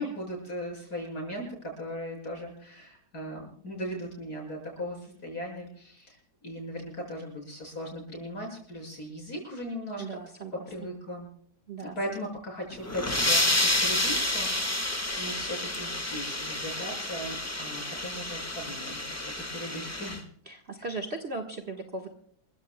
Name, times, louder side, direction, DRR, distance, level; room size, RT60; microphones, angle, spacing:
voice 1, 0.0-6.2 6.4-10.0 10.7-11.3 11.8-14.8 15.2-20.2 20.8-20.9, equal, 50° left, 0 dB, 7.1 m, -38 dB
voice 2, 10.0-10.6 11.7-11.9 20.5-22.1, right 3 dB, 35° right, 5 dB, 1.5 m, -37 dB
sound 1, 12.7-20.2, left 1 dB, 10° left, 1.1 m, -29 dB
28.0 x 15.0 x 2.2 m, 0.62 s
omnidirectional pair, 2.1 m